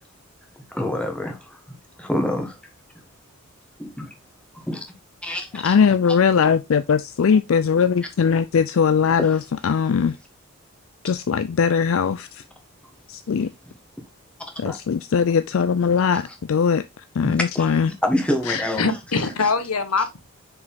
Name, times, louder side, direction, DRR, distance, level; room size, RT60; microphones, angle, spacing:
voice 1, 0.7-2.6 3.8-4.1 4.5-4.8 5.2-5.8 9.2-9.4 14.6-14.8 16.1-16.3 17.2-18.9, left 1 dB, 5° left, 1.4 m, -27 dB
voice 2, 5.5-10.2 11.0-12.4 13.1-13.5 14.6-16.8 17.2-17.9, left 6 dB, 60° left, 0.4 m, -20 dB
voice 3, 18.4-20.2, left 4 dB, 85° left, 1.1 m, -23 dB
6.1 x 5.0 x 3.6 m
head